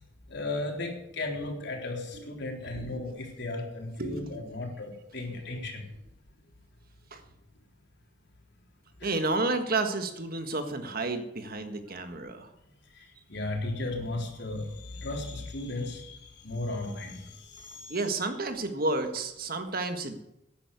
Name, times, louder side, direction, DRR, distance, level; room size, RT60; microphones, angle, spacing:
voice 1, 0.3-5.8 9.0-9.1 13.3-16.2 16.4-17.2, left 2 dB, 60° left, 1 dB, 3.7 m, -35 dB
voice 2, 4.0-4.4 7.1-7.2 9.0-12.5 17.9-20.2, right 2 dB, 50° right, 7 dB, 1.6 m, -31 dB
11.5 x 10.5 x 8.3 m, 0.88 s
head